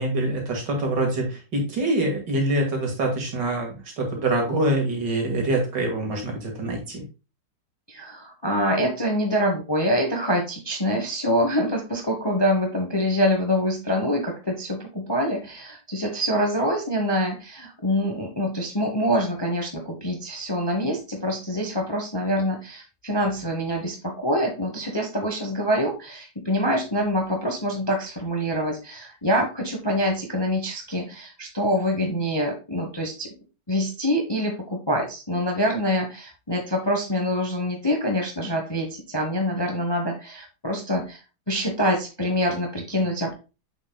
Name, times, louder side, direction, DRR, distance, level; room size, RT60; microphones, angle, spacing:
voice 1, 0.0-7.0, right 1 dB, 70° right, 1 dB, 2.6 m, -25 dB
voice 2, 7.9-33.3 33.7-41.2 41.5-43.3, equal, 20° left, 2 dB, 0.7 m, -25 dB
7.3 x 6.4 x 2.3 m, 0.30 s
omnidirectional pair, 2.0 m